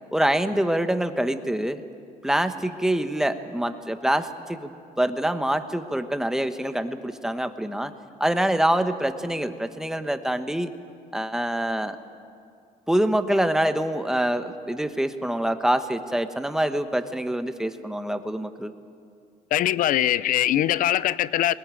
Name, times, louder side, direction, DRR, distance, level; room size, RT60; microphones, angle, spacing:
voice 1, 0.1-1.8 2.2-7.9 8.2-10.7 11.1-12.0 12.9-18.7, right 1 dB, 5° right, 1.1 m, -25 dB
voice 2, 19.5-21.5, left 12 dB, 60° left, 0.6 m, -22 dB
20.5 x 19.0 x 8.9 m
cardioid pair, 115°, 16 cm